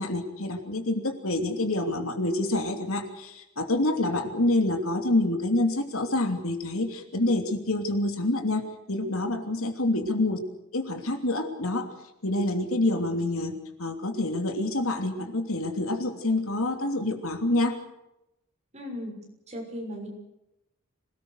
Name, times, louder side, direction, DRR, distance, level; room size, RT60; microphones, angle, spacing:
voice 1, 0.0-10.4 10.7-11.9 12.2-17.8, left 2 dB, 75° left, 5 dB, 3.0 m, -27 dB
voice 2, 18.7-19.2 19.5-20.1, equal, 30° right, 1 dB, 6.4 m, -37 dB
26.0 x 19.5 x 6.6 m, 0.88 s
head